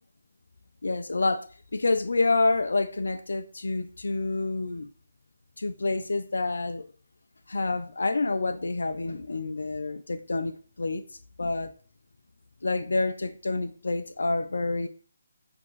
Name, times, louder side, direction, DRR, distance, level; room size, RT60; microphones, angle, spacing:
voice 1, 0.8-1.4 1.7-4.9 5.6-6.8 7.5-11.0 11.4-11.7 12.6-14.9, left 3 dB, 80° left, 0.4 m, -28 dB
5.8 x 2.6 x 3.1 m
figure-of-eight pair, 155°, 0 cm